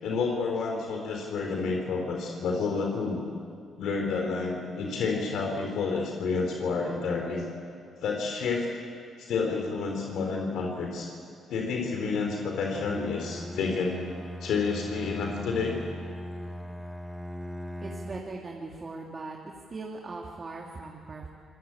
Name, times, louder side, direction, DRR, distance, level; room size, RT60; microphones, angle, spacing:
voice 1, 0.0-3.2 3.8-7.5 8.0-8.7 9.2-11.1 11.5-14.0 14.4-15.8, left 4 dB, 75° left, 1 dB, 3.7 m, -29 dB
Bowed string instrument, 12.7-18.4, equal, 5° left, 1.2 m, -39 dB
voice 2, 17.8-21.3, right 3 dB, 35° right, -1 dB, 2.6 m, -40 dB
25.5 x 20.0 x 8.7 m, 2.3 s
cardioid pair, 90°, 0 cm